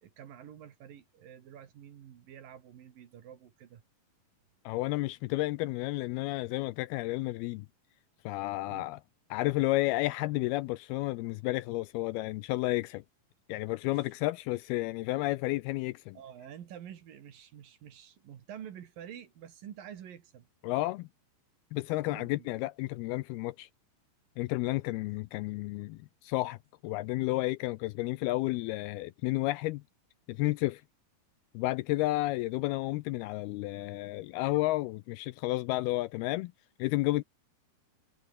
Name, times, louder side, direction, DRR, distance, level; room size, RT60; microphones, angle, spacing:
voice 1, 0.0-3.8 8.7-8.9 13.9-14.0 16.2-20.5 22.0-22.5, right 9 dB, 60° right, 3.4 m, -48 dB
voice 2, 4.7-7.7 8.3-9.0 9.3-13.0 13.5-16.2 20.6-21.1 21.7-23.7 24.4-26.6 26.8-29.8 30.3-30.8 31.5-36.5 36.8-37.2, left 19 dB, 80° left, 2.3 m, -31 dB
omnidirectional pair, 4.8 m